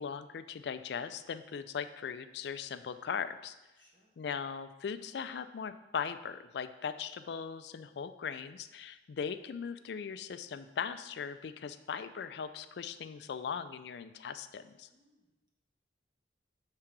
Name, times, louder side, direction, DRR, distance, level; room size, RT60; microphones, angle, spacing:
voice 1, 0.0-3.5 4.2-14.9, left 6 dB, 60° left, 11 dB, 0.3 m, -39 dB
voice 2, 3.8-4.2 14.9-15.5, equal, 25° right, -2 dB, 1.2 m, -69 dB
7.3 x 3.7 x 4.5 m, 1.0 s
head